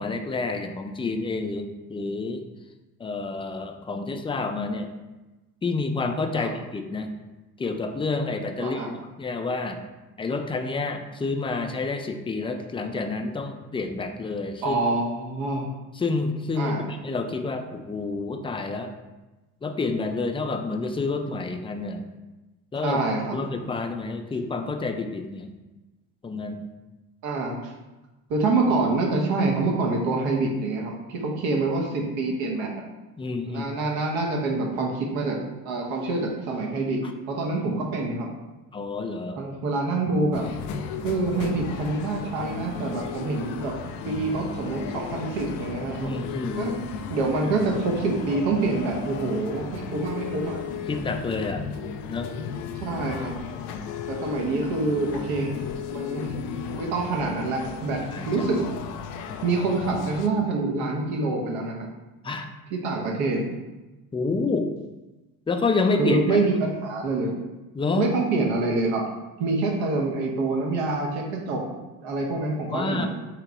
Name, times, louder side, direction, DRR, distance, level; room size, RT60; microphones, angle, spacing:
voice 1, 0.0-2.5 3.0-5.0 5.6-7.1 7.6-8.9 9.2-9.8 10.2-14.8 16.0-18.9 19.6-22.1 22.7-23.0 23.3-25.5 26.2-26.7 33.2-33.7 37.0-37.1 38.7-39.4 46.0-46.7 50.9-51.7 52.1-52.3 58.1-58.3 62.2-62.5 64.1-64.7 65.5-66.4 67.7-68.1 72.7-73.1, left 3 dB, 10° left, 5 dB, 0.4 m, -28 dB
voice 2, 14.6-15.7 16.6-16.8 22.8-23.4 27.2-27.7 28.3-32.7 33.5-35.4 35.6-37.0 37.3-38.3 39.4-40.4 41.0-43.7 44.0-46.1 46.6-46.7 47.1-50.6 52.8-53.4 54.1-55.5 55.9-56.4 56.7-58.6 59.4-61.9 62.7-63.4 66.0-67.4 67.9-69.0 69.4-71.6 72.0-73.1, right 3 dB, 65° right, 0 dB, 1.1 m, -26 dB
sound 1, 40.3-60.3, left 6 dB, 80° left, 0.5 m, -35 dB
3.7 x 2.9 x 4.8 m, 1.1 s
hypercardioid pair, 55°, 48 cm